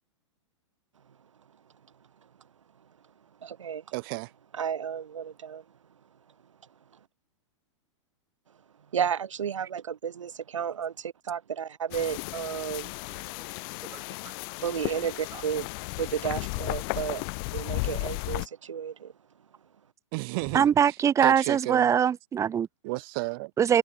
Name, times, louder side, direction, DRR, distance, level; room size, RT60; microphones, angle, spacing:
voice 1, 3.4-3.8 4.5-5.6 8.9-12.9 14.6-15.7 16.0-17.2 17.5-19.1, right 8 dB, 80° right, 4.9 m, -32 dB
voice 2, 3.9-4.3 20.1-21.9 22.8-23.5, right 28 dB, 50° right, 3.5 m, -33 dB
sound 1, 11.9-18.5, left 32 dB, 45° left, 3.7 m, -34 dB
voice 3, 20.5-22.7 23.6-23.8, right 8 dB, 20° right, 1.5 m, -22 dB
hypercardioid pair, 125°, 16 cm